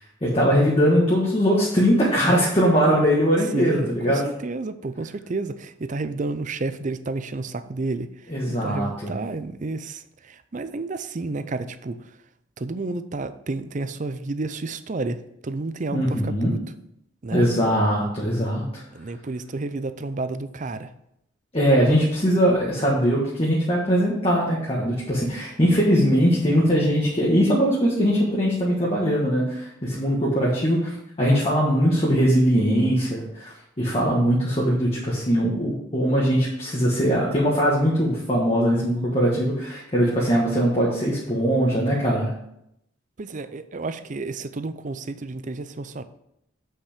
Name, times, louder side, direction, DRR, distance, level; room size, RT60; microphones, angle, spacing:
voice 1, 0.2-4.2 8.3-9.1 15.9-16.5 17.3-18.8 21.5-42.3, equal, 30° left, -5 dB, 1.5 m, -21 dB
voice 2, 3.5-12.0 12.6-16.6 17.2-17.4 18.9-20.9 43.2-46.0, right 3 dB, 40° right, 12 dB, 0.5 m, -31 dB
8.2 x 5.7 x 5.1 m, 0.79 s
head